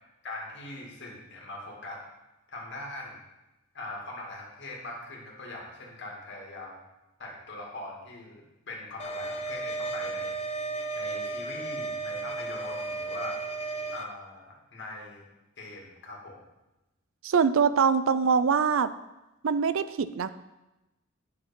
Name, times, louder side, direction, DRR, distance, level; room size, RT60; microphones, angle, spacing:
voice 1, 0.2-2.0 2.5-3.2 3.7-6.8 7.2-10.5 11.0-13.4 13.9-15.2 15.6-16.4, left 2 dB, 60° left, -2 dB, 2.1 m, -41 dB
sound 1, 9.0-14.0, right 3 dB, 30° left, 0.7 m, -34 dB
voice 2, 17.2-18.9 19.4-20.3, right 6 dB, 70° right, 13 dB, 0.4 m, -23 dB
9.7 x 4.9 x 5.3 m, 0.98 s
head